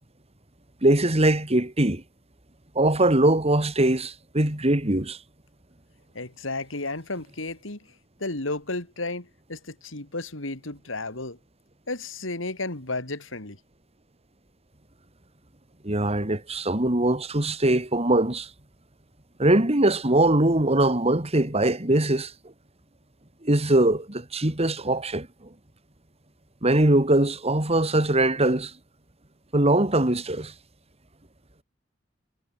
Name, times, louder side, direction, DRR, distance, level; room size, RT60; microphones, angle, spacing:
voice 1, 0.8-2.0 2.7-5.2 15.8-18.5 19.4-22.3 23.4-25.3 26.6-28.7 29.5-30.5, right 1 dB, 30° right, 2.7 m, -22 dB
voice 2, 6.1-7.8 8.2-11.4 11.9-13.6, left 2 dB, 80° left, 3.6 m, -33 dB
head